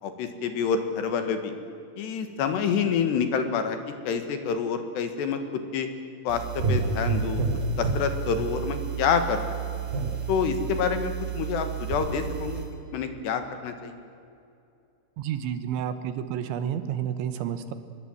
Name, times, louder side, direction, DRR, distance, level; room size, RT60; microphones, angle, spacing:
voice 1, 0.0-1.5 2.0-3.8 4.1-5.9 6.3-7.4 7.8-9.4 9.7-9.8 10.3-12.6 12.9-14.0, left 6 dB, 70° left, 8 dB, 3.6 m, -27 dB
sound 1, 6.3-12.6, right 5 dB, 50° right, 5.2 m, -30 dB
voice 2, 15.2-17.7, right 9 dB, 75° right, 11 dB, 3.5 m, -30 dB
25.0 x 21.5 x 7.9 m, 2.5 s
omnidirectional pair, 5.5 m